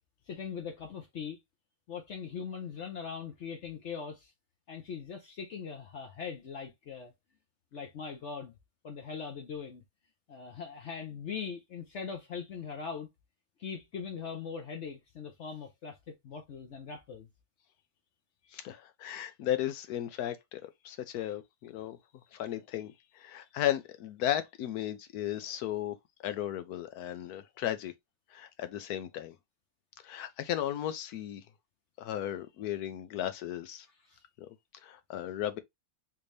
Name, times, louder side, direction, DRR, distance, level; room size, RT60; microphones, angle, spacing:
voice 1, 0.3-1.4 1.9-4.3 4.7-7.1 7.7-8.5 8.8-9.8 10.3-13.1 13.6-17.3 34.1-34.2, left 6 dB, 60° left, 0.9 m, -41 dB
voice 2, 18.5-22.0 22.3-25.9 26.2-27.9 28.3-29.3 30.0-31.4 32.0-33.9 34.4-34.5 34.8-35.6, left 11 dB, 85° left, 1.1 m, -35 dB
3.4 x 2.7 x 3.1 m
omnidirectional pair, 1.6 m